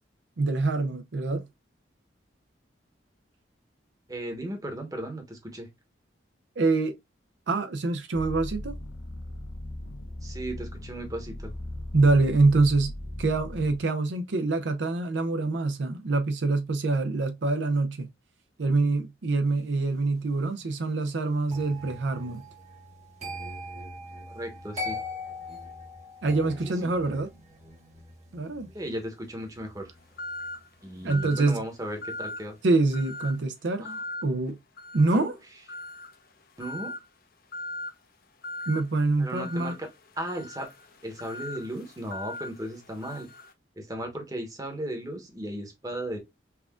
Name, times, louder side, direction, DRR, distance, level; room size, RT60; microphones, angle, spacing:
voice 1, 0.4-1.5 6.6-6.9 7.5-8.7 11.9-12.9 13.2-18.1 18.6-22.4 26.2-27.3 28.3-28.7 31.0-31.6 32.6-33.9 34.2-34.6 34.9-35.3 38.7-39.7, right 3 dB, 70° right, 0.5 m, -25 dB
voice 2, 4.1-5.7 10.2-11.5 24.3-25.0 26.7-26.9 28.7-29.9 30.8-32.6 33.8-34.0 35.1-35.3 36.6-37.0 39.2-39.9 40.2-40.7 41.0-43.3 43.8-46.2, right 1 dB, 20° right, 1.0 m, -36 dB
sound 1, 8.1-13.8, left 1 dB, 85° left, 0.8 m, -38 dB
sound 2, 21.5-32.5 32.8-33.1, left 1 dB, 35° right, 1.2 m, -42 dB
sound 3, 30.2-30.7 31.1-31.6 32.0-32.5 32.9-33.4 33.8-34.3 34.8-35.2 35.7-36.2 36.6-37.1 37.5-37.9 38.4-38.8 39.4-43.5, left 1 dB, 50° left, 0.6 m, -39 dB
5.7 x 2.4 x 2.2 m
head